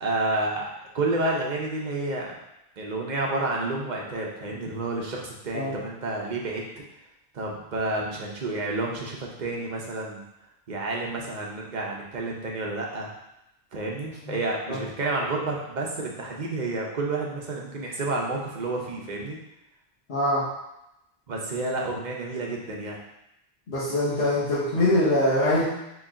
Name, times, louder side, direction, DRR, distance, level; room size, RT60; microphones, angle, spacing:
voice 1, 0.0-2.3 2.8-6.6 7.3-10.2 10.7-13.1 13.7-19.4 21.3-23.0, right 2 dB, 50° right, -1 dB, 0.8 m, -30 dB
voice 2, 20.1-20.4 23.7-25.6, left 1 dB, 75° left, -11 dB, 1.4 m, -23 dB
4.1 x 3.0 x 3.6 m, 0.86 s
omnidirectional pair, 1.1 m